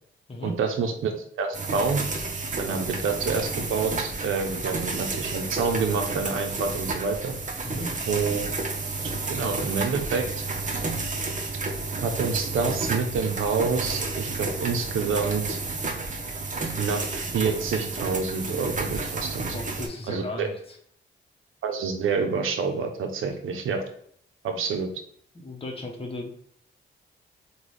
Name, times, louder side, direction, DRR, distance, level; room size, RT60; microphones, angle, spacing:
voice 1, 0.4-2.0 2.6-7.3 8.1-8.5 9.3-10.3 12.0-15.6 16.8-19.4 20.1-20.5 21.6-23.8 24.4-24.9, right 5 dB, 80° right, 4 dB, 0.6 m, -27 dB
sound 1, 1.5-19.9, right 3 dB, 40° right, 0.7 m, -31 dB
voice 2, 19.4-20.8 25.3-26.3, left 2 dB, 25° left, 0 dB, 0.9 m, -36 dB
3.8 x 2.2 x 3.1 m, 0.65 s
cardioid pair, 55°, 21 cm